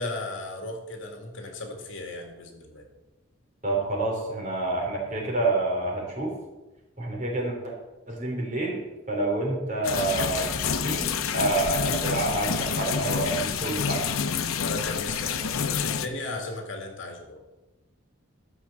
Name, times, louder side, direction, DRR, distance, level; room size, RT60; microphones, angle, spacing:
voice 1, 0.0-2.9 14.5-17.4, left 2 dB, 65° left, 3 dB, 2.2 m, -36 dB
voice 2, 3.6-6.3 7.0-7.7 8.1-8.8 9.1-14.0, right 2 dB, 40° right, -2 dB, 3.6 m, -28 dB
sound 1, 9.8-16.1, left 6 dB, 90° left, 0.8 m, -28 dB
13.0 x 6.3 x 7.1 m, 1.1 s
head